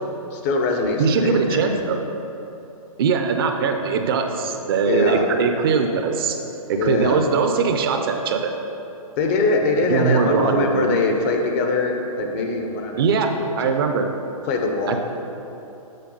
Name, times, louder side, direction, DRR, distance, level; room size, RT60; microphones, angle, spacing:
voice 1, 0.3-1.8 4.9-5.3 6.8-7.2 9.2-13.4 14.5-15.0, left 3 dB, 25° left, 3 dB, 0.5 m, -22 dB
voice 2, 1.0-2.0 3.0-6.4 6.7-8.5 9.9-11.0 13.0-13.3 13.6-14.1 14.9-15.0, right 5 dB, 40° right, 5 dB, 0.6 m, -21 dB
7.6 x 4.6 x 5.3 m, 2.9 s
hypercardioid pair, 150°, 19 cm